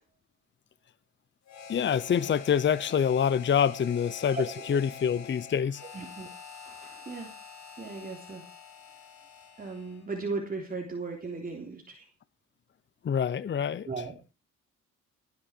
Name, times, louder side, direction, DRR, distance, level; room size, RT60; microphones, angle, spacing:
Harmonica, 1.5-10.1, left 6 dB, 65° left, 6.8 m, -46 dB
voice 1, 1.7-4.4 4.7-5.8 13.0-13.9, left 8 dB, 40° left, 0.8 m, -26 dB
voice 2, 4.3-4.8 5.9-6.3 6.6-7.4 7.8-8.4 9.6-12.1 13.9-14.2, right 4 dB, 30° right, 3.5 m, -37 dB
18.5 x 10.5 x 4.5 m
cardioid pair, 90°, 30 cm